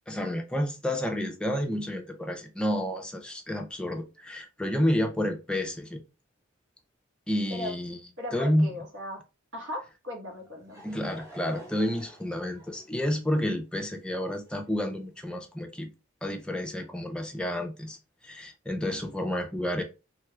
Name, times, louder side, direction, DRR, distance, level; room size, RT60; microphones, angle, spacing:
voice 1, 0.1-6.0 7.3-8.0 8.3-8.7 10.8-15.9 16.2-18.0 18.2-19.8, left 1 dB, 5° left, 0.4 m, -30 dB
voice 2, 8.2-9.2 9.5-10.8, left 1 dB, 70° right, 1.2 m, -37 dB
Laughter / Crowd, 10.3-15.0, right 1 dB, 15° right, 0.9 m, -50 dB
3.2 x 2.3 x 3.0 m
head